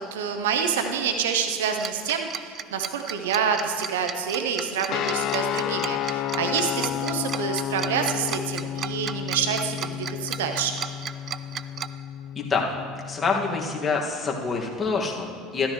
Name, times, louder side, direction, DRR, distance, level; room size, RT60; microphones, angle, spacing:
voice 1, 0.0-10.8, right 7 dB, 80° right, 5 dB, 0.7 m, -27 dB
Tick-tock, 1.8-11.9, right 8 dB, 45° right, 0.4 m, -34 dB
sound 1, 4.9-13.9, left 11 dB, 55° left, 0.3 m, -31 dB
voice 2, 13.0-15.7, left 4 dB, 25° left, -1 dB, 1.9 m, -26 dB
13.0 x 12.5 x 3.2 m, 2.1 s
hypercardioid pair, 75°, 0 cm